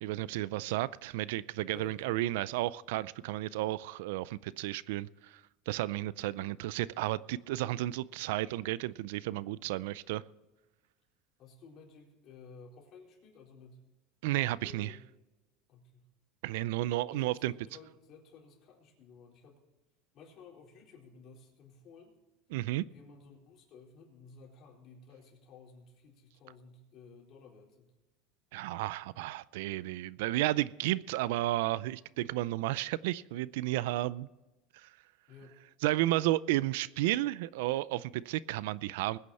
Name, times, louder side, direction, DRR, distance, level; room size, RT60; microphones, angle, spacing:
voice 1, 0.0-5.4 5.7-10.2 14.2-14.9 16.4-17.5 22.5-22.9 28.5-34.3 34.8-34.9 35.8-39.2, right 16 dB, 80° right, 0.4 m, -32 dB
voice 2, 1.7-2.2 11.4-13.8 14.6-15.1 15.7-16.1 17.0-19.6 20.1-22.1 22.9-27.9 35.3-35.6, left 4 dB, 45° left, 4.3 m, -55 dB
20.5 x 9.7 x 4.2 m
supercardioid pair, 145°, 0 cm